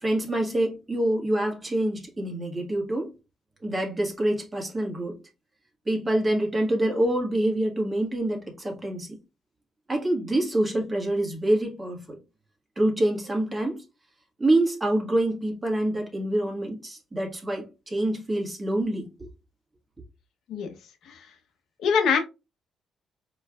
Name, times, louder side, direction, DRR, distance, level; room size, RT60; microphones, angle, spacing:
voice 1, 0.0-3.1 3.6-5.2 5.8-9.2 9.9-12.2 12.8-13.8 14.4-19.3, right 1 dB, 25° right, 1.6 m, -26 dB
voice 2, 21.8-22.2, left 6 dB, 75° left, 0.9 m, -23 dB
4.5 x 3.1 x 2.3 m
cardioid pair, 75°, 0 cm